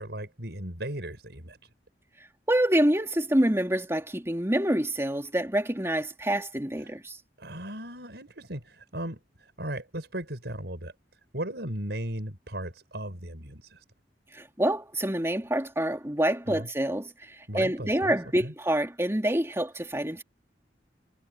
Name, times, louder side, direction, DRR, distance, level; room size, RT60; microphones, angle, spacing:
voice 1, 0.0-1.7 6.8-7.0 7.4-10.9 11.3-13.8 16.5-16.7 17.5-18.5, right 1 dB, 65° right, 7.9 m, -37 dB
voice 2, 2.5-7.2 14.3-17.1 17.5-20.2, right 1 dB, 15° right, 2.9 m, -26 dB
head